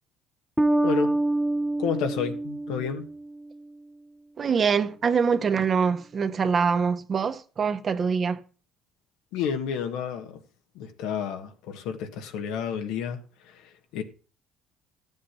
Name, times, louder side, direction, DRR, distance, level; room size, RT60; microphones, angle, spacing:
Bass guitar, 0.6-3.6, right 2 dB, 5° right, 0.9 m, -26 dB
voice 1, 0.8-1.2 1.8-3.1 9.3-10.4 10.7-14.0, left 7 dB, 85° left, 1.5 m, -31 dB
voice 2, 4.4-8.4, right 6 dB, 40° right, 1.2 m, -24 dB
13.0 x 7.5 x 5.7 m
supercardioid pair, 85°, 0 cm